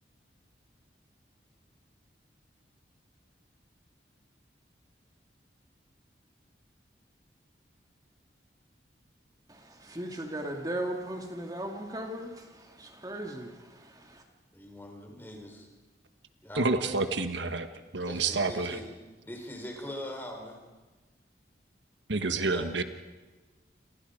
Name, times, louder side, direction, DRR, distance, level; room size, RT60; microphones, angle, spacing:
voice 1, 9.5-14.2, right 1 dB, 20° right, 3 dB, 2.4 m, -37 dB
voice 2, 14.5-15.7 16.4-17.0 18.0-18.8 19.2-20.6 22.4-22.7, left 1 dB, 10° left, 2 dB, 4.2 m, -41 dB
voice 3, 16.5-18.8 22.1-22.8, right 3 dB, 85° right, 9 dB, 1.4 m, -29 dB
28.5 x 27.0 x 5.1 m, 1.2 s
head